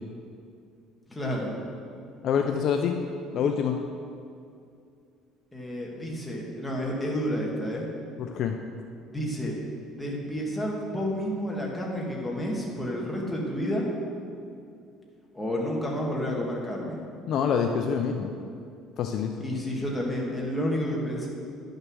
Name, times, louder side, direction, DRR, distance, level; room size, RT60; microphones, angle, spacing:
voice 1, 1.1-1.5 5.5-7.9 9.1-9.6 9.8-13.9 15.3-17.0 19.4-21.3, equal, 5° left, -3 dB, 1.7 m, -30 dB
voice 2, 2.2-3.0 3.3-3.8 8.2-8.6 17.3-18.3 19.0-19.3, left 7 dB, 45° left, 4 dB, 0.5 m, -26 dB
10.5 x 6.6 x 6.2 m, 2.4 s
cardioid pair, 155°, 0 cm